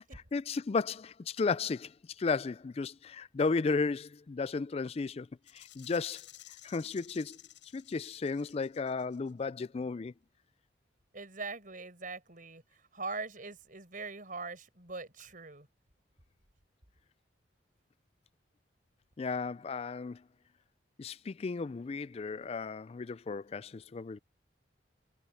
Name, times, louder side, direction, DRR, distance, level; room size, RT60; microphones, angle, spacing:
voice 1, 0.1-1.9 2.2-5.3 5.5-6.2 6.6-7.4 7.7-10.1 19.2-20.2 21.0-24.2, left 4 dB, 35° left, 0.3 m, -34 dB
Rattle (instrument), 5.5-9.3, left 13 dB, 80° left, 6.5 m, -54 dB
voice 2, 11.1-12.6 12.9-15.7, right 3 dB, 45° right, 5.1 m, -42 dB
head